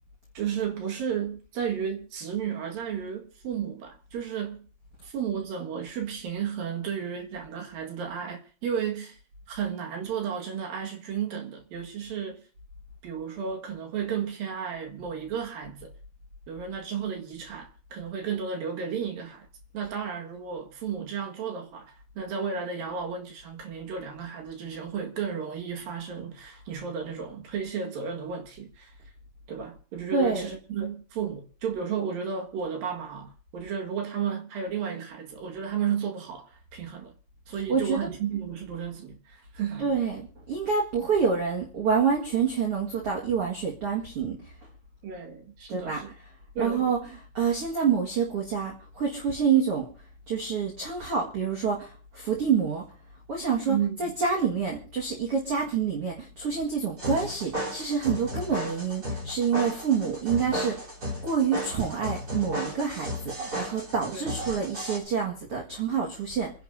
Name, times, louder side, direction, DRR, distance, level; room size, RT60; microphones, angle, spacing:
voice 1, 0.4-4.7 5.0-9.2 9.5-12.4 13.0-15.9 16.5-19.5 19.7-28.9 29.5-37.1 37.5-39.9 45.0-46.1 46.6-46.8 53.7-54.1 64.1-64.4, right 7 dB, 65° right, 3.4 m, -33 dB
voice 2, 30.1-30.5 37.7-38.1 39.8-44.5 45.7-46.3 46.6-49.9 50.3-52.8 53.3-60.9 61.2-66.5, right 6 dB, 45° right, 2.2 m, -27 dB
sound 1, 57.0-65.0, equal, 25° right, 3.8 m, -34 dB
27.5 x 10.5 x 2.7 m
omnidirectional pair, 4.5 m